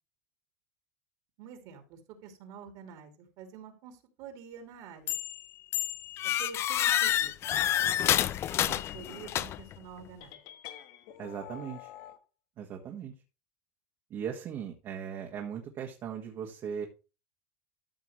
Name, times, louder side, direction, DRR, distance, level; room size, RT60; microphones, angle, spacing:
voice 1, 1.4-5.2 6.2-7.3 8.7-10.4, right 6 dB, 55° right, 6 dB, 2.7 m, -48 dB
sound 1, 5.1-5.4 5.7-9.8, left 12 dB, 35° left, 0.5 m, -28 dB
sound 2, 10.2-12.2, left 12 dB, 60° left, 1.3 m, -47 dB
voice 2, 11.2-11.9 12.6-13.1 14.1-16.9, right 8 dB, 40° right, 1 dB, 1.7 m, -38 dB
13.0 x 5.8 x 3.2 m, 0.31 s
supercardioid pair, 135°, 8 cm